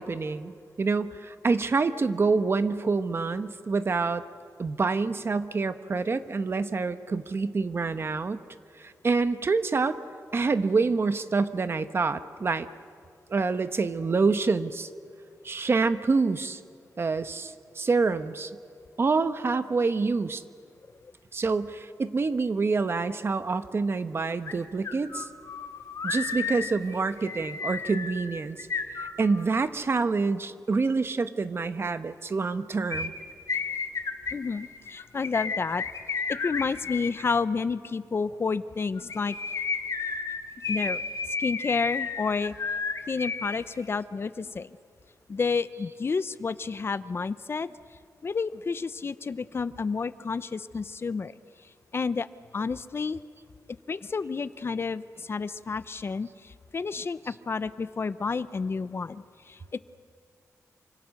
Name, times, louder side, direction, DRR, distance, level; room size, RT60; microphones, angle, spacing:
voice 1, 0.0-4.2 4.6-8.4 8.8-10.0 10.3-12.7 13.3-14.9 15.4-16.6 17.0-18.5 19.0-20.4 21.3-25.3 26.0-28.6 29.0-33.1 57.3-57.4, right 4 dB, 40° right, 11 dB, 1.0 m, -27 dB
sound 1, 24.5-24.6 24.8-29.6 32.9-37.1 39.0-43.6 43.8-43.9, left 5 dB, 60° left, 1.7 m, -32 dB
voice 2, 34.3-35.8 36.3-39.4 40.7-41.0 41.4-42.5 43.1-44.7 45.3-47.7 48.2-51.3 51.9-52.3 52.5-53.2 53.9-59.8, left 4 dB, 40° left, 15 dB, 0.6 m, -30 dB
28.0 x 25.5 x 6.5 m, 2.2 s
wide cardioid pair, 115°, 6 cm